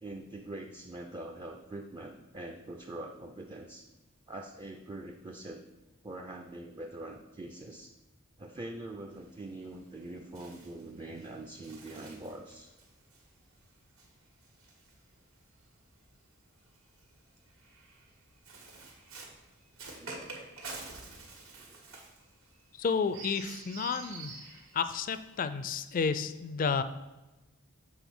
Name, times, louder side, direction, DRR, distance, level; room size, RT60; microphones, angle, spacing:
voice 1, 0.0-3.9 4.3-5.7 6.0-7.9 8.4-12.7 19.8-20.2 21.5-22.0, right 2 dB, 20° right, 2 dB, 0.4 m, -44 dB
Bird, 9.1-15.6 16.6-25.4, right 3 dB, 85° right, 1.8 m, -49 dB
voice 2, 22.8-24.3 24.7-26.8, left 5 dB, 40° left, 11 dB, 0.4 m, -31 dB
7.1 x 3.7 x 6.1 m, 1.1 s
head